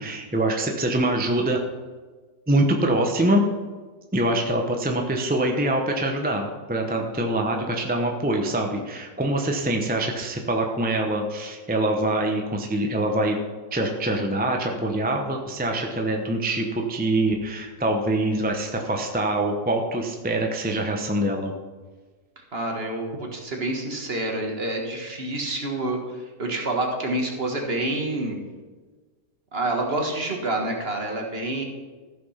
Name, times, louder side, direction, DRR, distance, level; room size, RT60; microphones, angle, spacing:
voice 1, 0.0-1.6 2.5-3.5 4.1-13.4 13.7-21.5, right 1 dB, 10° right, 2 dB, 0.6 m, -24 dB
voice 2, 22.4-26.0 26.4-28.4 29.5-31.6, right 2 dB, 35° right, 1 dB, 1.7 m, -28 dB
14.5 x 6.1 x 5.8 m, 1.4 s
omnidirectional pair, 1.9 m